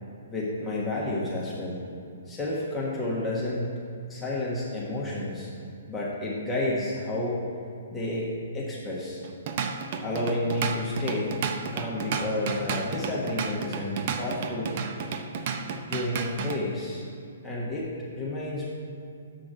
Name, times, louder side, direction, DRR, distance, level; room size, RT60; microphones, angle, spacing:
voice 1, 0.3-1.8 2.3-3.7 4.1-5.5 5.9-7.4 7.9-9.2 10.0-11.3 11.7-14.7 15.9-17.0 17.4-18.6, left 1 dB, 10° left, -7 dB, 1.2 m, -30 dB
Drum kit / Drum, 9.2-16.6, right 6 dB, 45° right, 0.5 m, -32 dB
7.3 x 3.8 x 6.4 m, 2.5 s
figure-of-eight pair, 125°, 0 cm